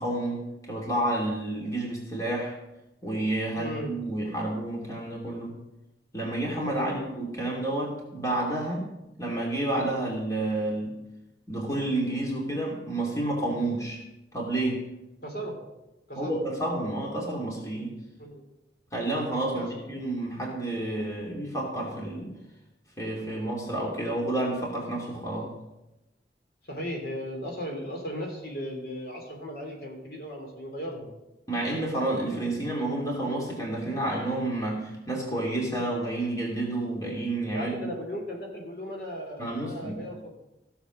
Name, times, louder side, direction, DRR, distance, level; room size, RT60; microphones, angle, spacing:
voice 1, 0.0-2.6 3.0-5.6 6.1-8.9 9.2-10.9 11.5-14.0 14.3-14.9 16.1-18.0 18.9-22.3 23.0-25.5 26.8-26.9 31.5-37.9 39.4-40.0, right 1 dB, 20° left, -2 dB, 2.8 m, -30 dB
voice 2, 3.5-3.9 6.8-7.0 15.2-15.6 16.1-16.4 18.2-18.4 19.5-20.0 26.6-31.1 37.5-40.4, equal, 60° left, 1 dB, 3.1 m, -36 dB
16.0 x 7.2 x 6.4 m, 0.95 s
head